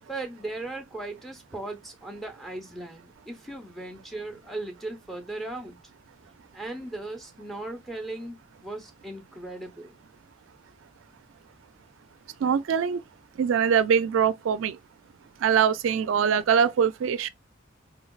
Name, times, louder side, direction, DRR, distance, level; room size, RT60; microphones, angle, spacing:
voice 1, 0.1-5.8 6.5-10.0, right 2 dB, ahead, 0.8 m, -37 dB
voice 2, 12.4-13.0 13.4-14.8 15.4-17.3, right 7 dB, 80° right, 0.3 m, -23 dB
3.8 x 3.2 x 2.3 m
head